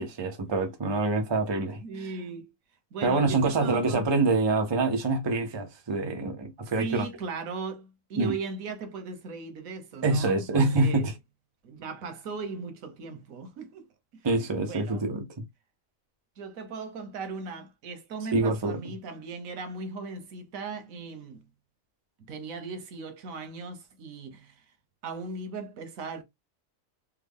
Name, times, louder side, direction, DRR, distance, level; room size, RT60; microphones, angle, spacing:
voice 1, 0.0-1.8 3.0-7.1 8.2-8.3 10.0-11.1 14.2-15.4 18.3-18.9, right 3 dB, 25° right, 0.6 m, -26 dB
voice 2, 1.8-2.5 2.9-4.0 6.8-11.1 11.6-13.9 14.1-14.3 14.6-15.1 16.4-21.5 22.2-24.6 25.0-26.2, right 4 dB, 90° right, 1.3 m, -38 dB
3.5 x 2.1 x 3.5 m
omnidirectional pair, 1.4 m